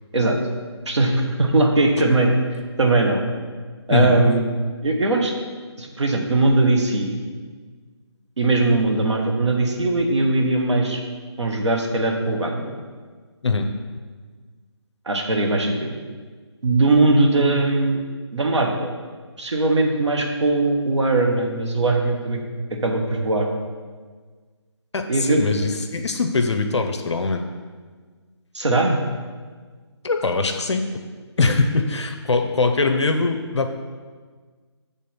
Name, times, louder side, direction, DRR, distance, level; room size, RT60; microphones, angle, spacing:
voice 1, 0.9-2.3 2.8-3.2 3.9-4.5 4.8-5.3 5.8-7.2 8.4-11.0 11.4-12.7 15.1-15.9 16.6-18.0 18.3-18.9 19.4-22.4 22.8-23.5 25.1-25.4 28.5-29.0, right 2 dB, 80° right, 2 dB, 1.1 m, -20 dB
voice 2, 24.9-27.4 30.0-30.8 31.4-33.7, left 3 dB, 75° left, 6 dB, 0.5 m, -22 dB
7.4 x 3.5 x 4.3 m, 1.5 s
figure-of-eight pair, 160°, 15 cm